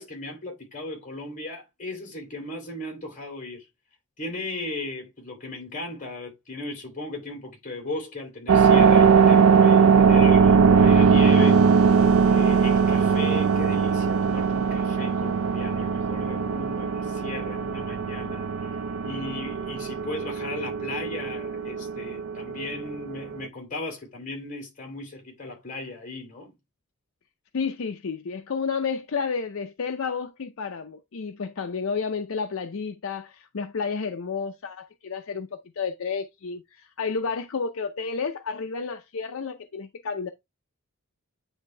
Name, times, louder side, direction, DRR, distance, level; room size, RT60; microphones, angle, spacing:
voice 1, 0.0-3.7 4.2-12.0 12.3-26.5, left 2 dB, 35° left, 3.0 m, -36 dB
sound 1, 8.5-23.5, right 6 dB, 80° right, 0.4 m, -20 dB
voice 2, 27.5-40.3, left 5 dB, 70° left, 0.5 m, -31 dB
9.3 x 3.4 x 3.3 m
head